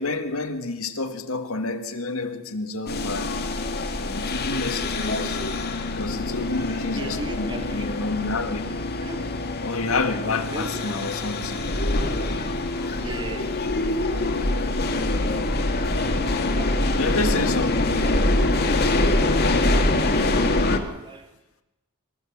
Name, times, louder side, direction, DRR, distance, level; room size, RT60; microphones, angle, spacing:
voice 1, 0.0-3.3 4.1-5.4 5.9-8.6 9.6-11.7 16.9-17.9, left 3 dB, 75° left, 2.0 m, -29 dB
sound 1, 2.9-20.8, left 2 dB, 50° left, 2.0 m, -24 dB
voice 2, 6.9-8.0 9.0-9.3 10.5-11.0 12.0-12.1 12.7-14.4 15.2-15.7 16.5-17.2 20.3-21.3, right 1 dB, 20° right, 2.3 m, -39 dB
24.0 x 15.0 x 7.3 m
head